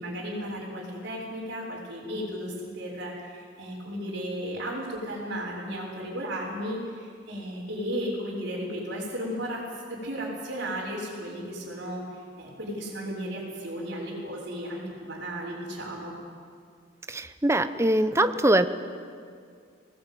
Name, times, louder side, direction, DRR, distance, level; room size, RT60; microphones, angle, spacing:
voice 1, 0.0-9.6 9.9-16.1, equal, 60° right, -9 dB, 5.5 m, -34 dB
voice 2, 17.1-18.7, right 1 dB, 15° right, 10 dB, 0.8 m, -22 dB
20.0 x 18.5 x 9.2 m, 2.2 s
head